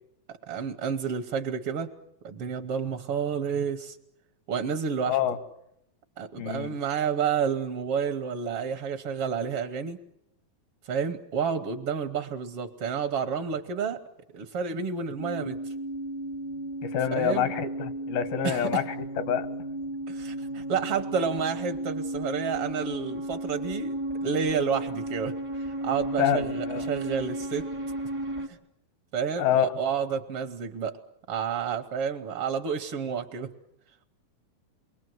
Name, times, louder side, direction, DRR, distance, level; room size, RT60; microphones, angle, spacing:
voice 1, 0.3-1.9 2.2-4.0 4.5-5.2 6.2-10.0 10.9-14.0 14.3-15.6 17.1-17.5 18.4-18.8 20.1-25.3 25.8-27.7 28.5-28.6 29.1-31.0 31.3-33.5, right 6 dB, 70° right, 6 dB, 1.4 m, -30 dB
voice 2, 5.0-5.4 6.4-6.8 16.8-18.8 19.3-19.5 26.2-26.9 29.4-29.7, left 10 dB, 90° left, 11 dB, 3.3 m, -26 dB
sound 1, 15.2-28.5, right 1 dB, 30° right, 0.5 m, -34 dB
28.5 x 22.0 x 7.8 m, 0.79 s
omnidirectional pair, 4.1 m